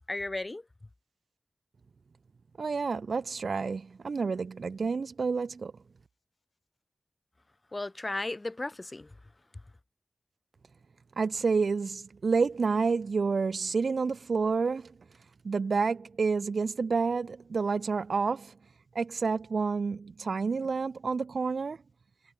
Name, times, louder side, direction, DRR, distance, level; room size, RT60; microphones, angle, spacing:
voice 1, 0.1-0.6 7.7-9.2, left 2 dB, 35° left, 2.5 m, -35 dB
voice 2, 2.6-5.7 11.2-14.9 15.4-18.5 18.9-21.8, right 4 dB, 70° right, 1.6 m, -29 dB
cardioid pair, 40°, 0 cm